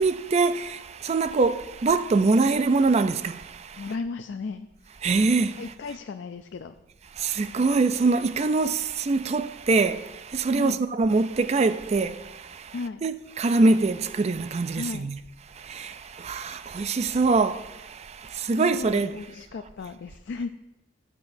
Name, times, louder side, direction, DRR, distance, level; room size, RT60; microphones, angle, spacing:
voice 1, 0.0-3.9 5.0-5.7 7.2-15.2 15.6-19.1, right 3 dB, 35° right, 0.4 m, -24 dB
voice 2, 3.8-4.7 5.6-6.7 10.6-10.8 12.7-13.0 14.7-15.1 18.3-20.5, left 4 dB, 70° left, 0.4 m, -35 dB
14.5 x 7.6 x 2.6 m
head